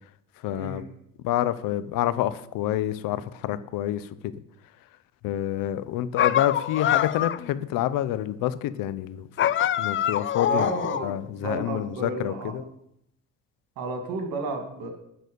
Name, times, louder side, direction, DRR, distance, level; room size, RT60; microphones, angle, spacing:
voice 1, 0.4-0.8 1.2-4.3 5.2-9.3 9.8-10.7 11.0-12.6, left 12 dB, 80° left, 15 dB, 0.7 m, -28 dB
sound 1, 6.2-7.5 9.4-11.2, left 10 dB, 40° left, 0.4 m, -25 dB
voice 2, 10.5-12.5 13.8-14.9, right 3 dB, 75° right, 4 dB, 2.2 m, -32 dB
11.0 x 4.2 x 6.7 m, 0.78 s
cardioid pair, 90°, 34 cm